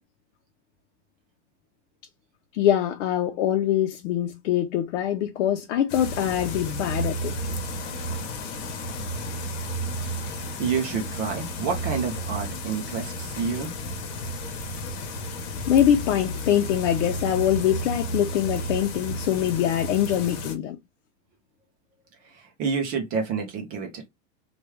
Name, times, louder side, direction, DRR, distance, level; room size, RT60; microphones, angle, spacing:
voice 1, 2.5-7.3 15.7-20.8, left 10 dB, 85° left, 0.6 m, -23 dB
sound 1, 5.9-20.6, equal, 65° left, 1.0 m, -32 dB
voice 2, 10.6-13.7 22.3-24.1, right 5 dB, 25° right, 0.4 m, -29 dB
3.1 x 2.3 x 3.1 m
supercardioid pair, 160°, 36 cm